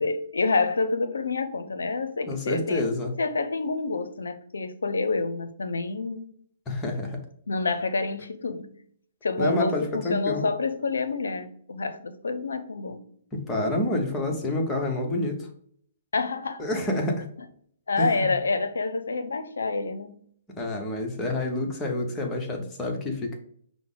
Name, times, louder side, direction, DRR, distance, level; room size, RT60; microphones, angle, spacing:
voice 1, 0.0-2.8 3.2-6.3 7.5-8.7 9.2-13.0 16.1-16.6 17.9-20.1, left 3 dB, 85° left, 0.5 m, -28 dB
voice 2, 2.3-3.1 6.7-7.2 9.4-10.4 13.5-15.4 16.6-17.2 18.0-18.3 20.6-23.4, left 1 dB, 15° left, 1.0 m, -28 dB
5.7 x 2.1 x 3.8 m
hypercardioid pair, 135°, 0 cm